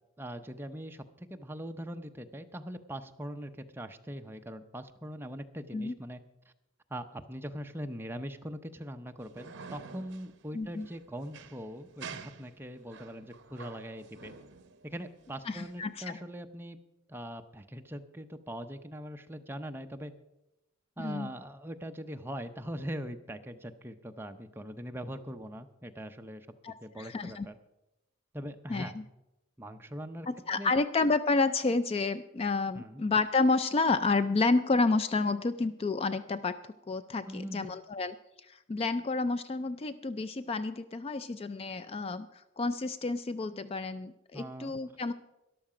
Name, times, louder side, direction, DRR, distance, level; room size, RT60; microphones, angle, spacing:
voice 1, 0.2-6.2 6.9-14.3 14.8-16.8 17.1-20.1 21.0-26.5 26.8-27.6 28.3-28.9 29.6-30.3 30.6-30.7 32.7-33.0 37.3-37.7 44.3-44.7, equal, 10° right, 6 dB, 0.6 m, -41 dB
sound 1, 9.2-16.0, right 5 dB, 55° right, 0.9 m, -49 dB
voice 2, 10.5-10.9 15.5-16.2 21.0-21.3 26.6-27.5 28.7-29.0 30.3-36.5 36.9-38.1 38.5-42.3 42.6-45.1, left 3 dB, 30° left, 13 dB, 0.3 m, -30 dB
13.0 x 11.5 x 4.9 m, 0.95 s
head